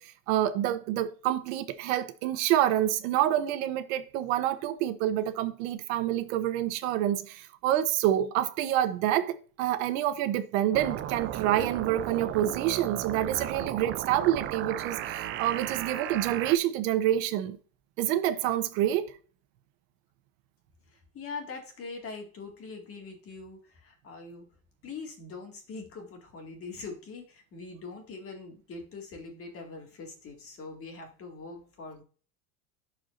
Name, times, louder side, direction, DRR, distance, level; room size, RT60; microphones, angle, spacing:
voice 1, 0.0-17.6 18.0-19.1, right 12 dB, 75° right, 0.9 m, -27 dB
sound 1, 10.7-16.6, right 11 dB, 30° right, 0.4 m, -35 dB
voice 2, 20.9-24.5 24.8-32.0, left 4 dB, 35° left, 2.1 m, -43 dB
11.5 x 4.7 x 2.6 m
cardioid pair, 150°, 41 cm